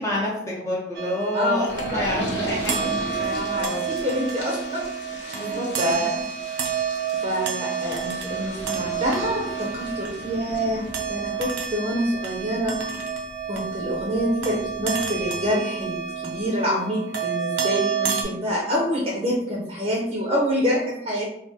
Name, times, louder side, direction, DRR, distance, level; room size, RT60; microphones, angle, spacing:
voice 1, 0.0-3.9 5.3-5.7, left 1 dB, 15° left, -5 dB, 0.5 m, -28 dB
sound 1, 0.9-18.2, right 7 dB, 85° right, 0.5 m, -30 dB
voice 2, 1.3-2.0 2.4-2.5 3.2-4.8 5.1-6.2 7.1-12.7 13.5-21.3, equal, 30° right, -3 dB, 0.6 m, -26 dB
sound 2, 1.6-15.9 16.4-16.5 16.7-16.8, left 1 dB, 70° left, 0.8 m, -38 dB
3.5 x 2.3 x 2.7 m, 0.83 s
head